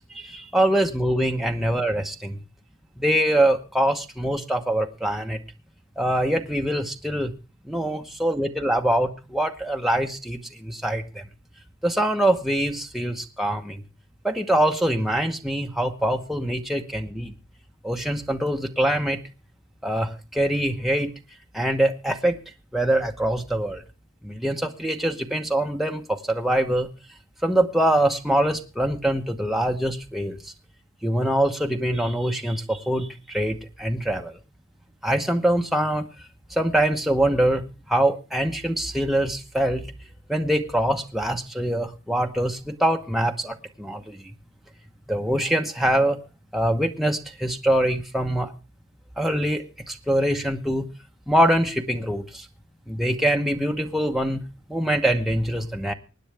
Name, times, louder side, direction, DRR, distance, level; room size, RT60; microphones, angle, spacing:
voice 1, 0.1-2.4 3.0-5.4 6.0-7.3 7.6-11.2 11.8-13.8 14.2-17.3 17.8-19.2 19.8-21.1 21.5-22.4 22.7-23.8 24.2-26.9 27.4-30.4 31.0-34.4 35.0-36.1 36.5-37.6 37.9-39.8 40.3-44.2 45.1-46.2 46.5-48.5 49.2-50.8 51.3-52.4 52.9-54.4 54.7-55.9, right 1 dB, ahead, 2 dB, 1.0 m, -24 dB
24.5 x 9.5 x 3.4 m, 0.32 s
head